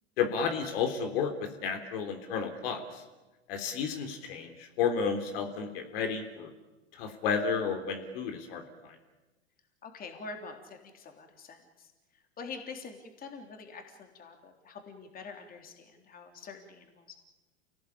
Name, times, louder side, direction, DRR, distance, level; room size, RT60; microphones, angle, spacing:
voice 1, 0.2-3.0 3.5-6.5 6.9-9.0, left 6 dB, 55° left, 5 dB, 3.6 m, -32 dB
voice 2, 9.8-11.9 12.4-17.1, left 4 dB, 25° left, 4 dB, 3.5 m, -45 dB
29.0 x 18.0 x 8.6 m, 1.1 s
hypercardioid pair, 100°, 34 cm